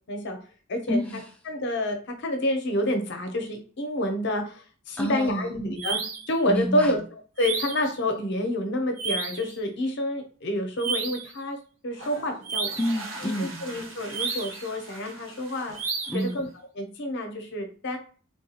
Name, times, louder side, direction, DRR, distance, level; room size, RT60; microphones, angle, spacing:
voice 1, 0.1-0.4 0.7-1.0 1.5-6.0 6.3-7.0 7.4-11.6 11.8-12.8 13.2-15.8 16.1-16.5 16.8-18.0, left 1 dB, 55° left, 4 dB, 0.7 m, -28 dB
voice 2, 0.9-1.3 5.0-5.5 6.5-7.0 12.8-13.6 16.1-16.4, equal, 5° left, 0 dB, 0.3 m, -28 dB
sound 1, 5.8-6.3 7.4-7.9 9.0-9.5 10.8-11.3 12.4-13.0 14.1-14.7 15.7-16.3, right 5 dB, 85° right, 0.6 m, -31 dB
sound 2, 11.9-16.5, right 2 dB, 65° right, 0.9 m, -43 dB
3.5 x 2.3 x 2.8 m, 0.40 s
head